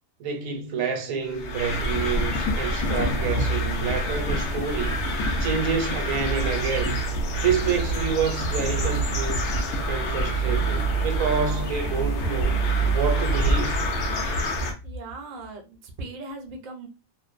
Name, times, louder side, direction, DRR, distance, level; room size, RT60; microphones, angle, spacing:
voice 1, 0.2-5.0 5.4-7.0 7.4-9.5 9.9-12.6 12.9-13.8, right 6 dB, 75° right, 1.0 m, -28 dB
sound 1, 1.3-14.7, right 1 dB, 65° left, 0.8 m, -26 dB
voice 2, 14.8-16.9, right 2 dB, 55° right, 0.5 m, -38 dB
2.5 x 2.1 x 2.4 m
omnidirectional pair, 1.4 m